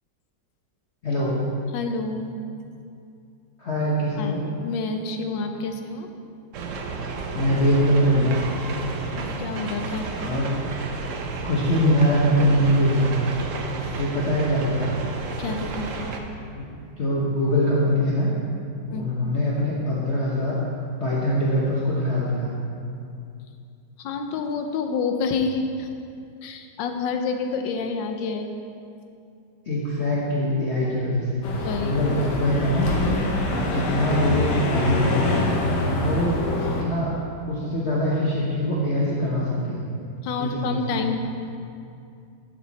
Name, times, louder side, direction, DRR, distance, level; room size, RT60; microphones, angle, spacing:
voice 1, 1.0-1.4 3.6-4.4 7.3-8.4 10.2-10.5 11.4-13.3 14.0-14.9 16.5-16.7 17.0-18.3 18.9-20.6 21.0-22.5 29.7-31.5 31.8-33.2 33.7-35.5 35.9-37.2 37.5-39.8 40.4-41.0, equal, 45° left, -6 dB, 1.2 m, -23 dB
voice 2, 1.7-2.4 4.2-4.3 4.6-6.1 9.2-10.1 15.4-16.1 18.9-19.0 24.0-25.9 26.4-28.5 31.6-32.0 40.2-41.2, left 4 dB, 90° left, 5 dB, 1.4 m, -28 dB
sound 1, 6.5-16.2, right 4 dB, 60° right, 0.9 m, -32 dB
sound 2, 31.4-36.8, left 2 dB, 70° left, 1.6 m, -25 dB
11.5 x 6.1 x 4.1 m, 2.5 s
omnidirectional pair, 2.0 m